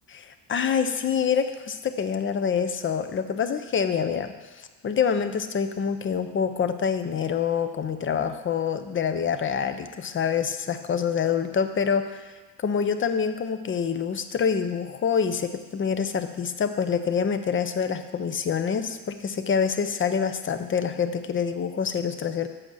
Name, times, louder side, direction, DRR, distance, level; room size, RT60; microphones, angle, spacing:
voice 1, 0.1-12.3 12.6-22.5, left 7 dB, 30° left, 9 dB, 0.6 m, -26 dB
7.8 x 5.7 x 6.2 m, 1.3 s
cardioid pair, 105°, 43 cm